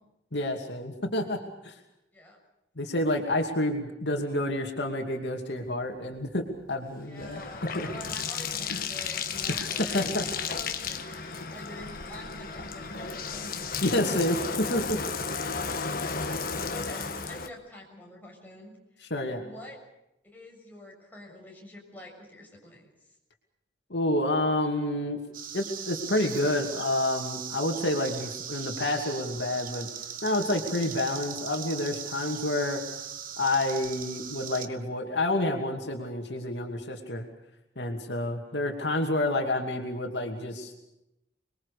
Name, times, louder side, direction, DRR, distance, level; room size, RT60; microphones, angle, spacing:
voice 1, 0.3-1.8 2.8-7.4 7.7-7.9 8.7-8.8 9.5-10.3 13.8-15.0 15.6-15.8 19.0-19.4 23.9-25.2 25.5-29.9 30.2-32.8 33.4-37.3 37.8-40.8, left 1 dB, 70° left, 3 dB, 2.7 m, -29 dB
Bathtub (filling or washing), 6.1-17.5, left 5 dB, 50° left, 1.5 m, -34 dB
voice 2, 7.0-13.5 16.2-19.1 19.4-19.8 20.2-22.9 38.3-38.4, left 1 dB, 10° left, -2 dB, 7.0 m, -47 dB
sound 1, 25.3-34.7, right 8 dB, 50° right, 1.4 m, -39 dB
26.5 x 22.0 x 6.8 m, 0.87 s
head